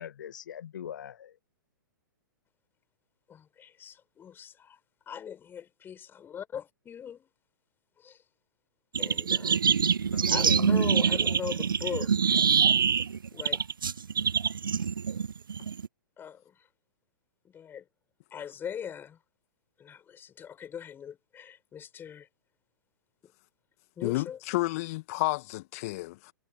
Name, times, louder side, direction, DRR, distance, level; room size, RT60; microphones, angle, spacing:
voice 1, 0.0-1.4 10.1-11.0, left 9 dB, 60° left, 1.6 m, -40 dB
voice 2, 3.3-4.8 5.1-7.3 8.0-8.2 9.0-9.7 10.3-12.4 13.3-13.6 16.2-16.6 17.4-17.8 18.3-19.2 19.8-22.3 24.0-24.4, left 8 dB, 20° left, 6.1 m, -40 dB
sound 1, 8.9-15.9, right 6 dB, 70° right, 1.3 m, -25 dB
voice 3, 24.0-26.3, left 21 dB, 40° left, 1.6 m, -31 dB
figure-of-eight pair, 110°, 12 cm